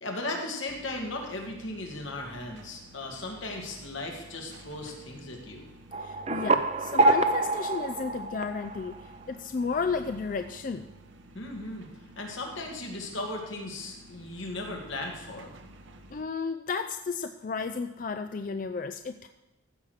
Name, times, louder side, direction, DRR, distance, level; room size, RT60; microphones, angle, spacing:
voice 1, 0.0-5.7 11.3-11.9 12.2-15.5, left 2 dB, 80° left, 1 dB, 2.2 m, -37 dB
sound 1, 0.7-16.2, right 1 dB, 70° right, 0.9 m, -51 dB
sound 2, 5.9-9.2, right 2 dB, 35° right, 0.5 m, -26 dB
voice 2, 6.0-10.9 16.1-19.3, left 5 dB, 45° left, 8 dB, 0.4 m, -33 dB
15.0 x 6.4 x 5.0 m, 0.96 s
head